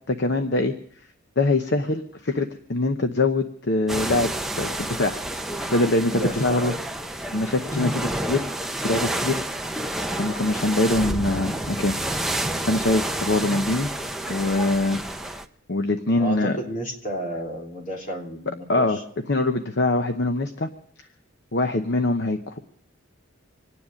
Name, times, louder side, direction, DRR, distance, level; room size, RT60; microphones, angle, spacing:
voice 1, 0.1-0.7 1.4-4.3 4.6-6.7 7.3-8.5 8.8-9.4 10.2-12.4 12.7-13.9 14.3-15.4 15.7-16.6 18.7-19.0 19.3-20.7 21.5-22.6, left 2 dB, 55° left, 7 dB, 0.9 m, -23 dB
sound 1, 3.9-15.5, right 1 dB, ahead, 0.6 m, -29 dB
voice 2, 6.0-6.8 7.7-8.0 10.5-10.6 16.2-19.0, equal, 40° left, -1 dB, 3.2 m, -32 dB
26.0 x 9.9 x 5.1 m, 0.62 s
head